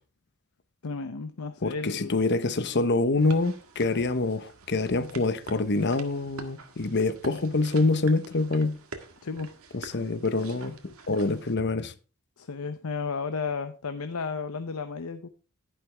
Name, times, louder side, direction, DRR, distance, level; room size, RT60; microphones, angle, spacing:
voice 1, 0.8-2.1 9.2-9.5 12.4-15.3, left 4 dB, 85° left, 0.8 m, -33 dB
voice 2, 1.6-8.8 9.7-11.9, left 3 dB, 55° left, 1.0 m, -26 dB
sound 1, 3.2-11.5, right 3 dB, 75° right, 1.7 m, -47 dB
11.5 x 11.0 x 3.4 m
head